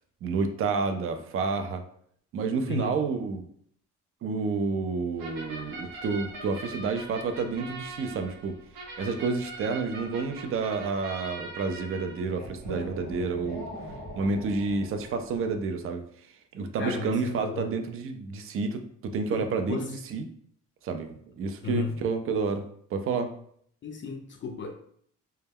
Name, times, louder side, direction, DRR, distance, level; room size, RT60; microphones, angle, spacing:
voice 1, 0.2-1.8 2.3-3.5 4.2-8.6 9.0-13.7 14.2-16.0 16.5-20.3 20.8-22.7 22.9-23.3, right 4 dB, 45° right, 7 dB, 0.4 m, -29 dB
voice 2, 2.7-3.0 16.8-17.7 19.3-19.9 21.6-22.0 23.8-24.7, left 4 dB, 40° left, 4 dB, 0.4 m, -34 dB
sound 1, 5.2-15.5, right 1 dB, 90° right, 0.9 m, -41 dB
2.2 x 2.1 x 3.4 m, 0.64 s
cardioid pair, 90°, 30 cm